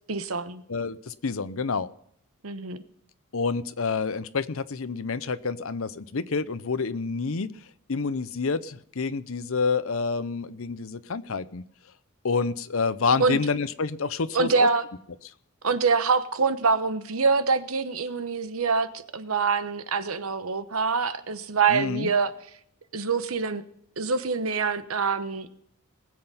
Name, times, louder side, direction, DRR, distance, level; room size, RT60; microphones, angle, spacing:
voice 1, 0.1-0.6 2.4-2.8 13.2-13.4 14.3-14.9 15.6-22.3 22.9-23.6 24.0-25.6, right 4 dB, 75° right, 11 dB, 1.0 m, -25 dB
voice 2, 0.7-1.9 3.3-7.5 7.9-11.6 12.2-14.7 21.7-22.1, left 4 dB, 70° left, 14 dB, 0.7 m, -28 dB
20.0 x 7.8 x 5.6 m, 0.70 s
head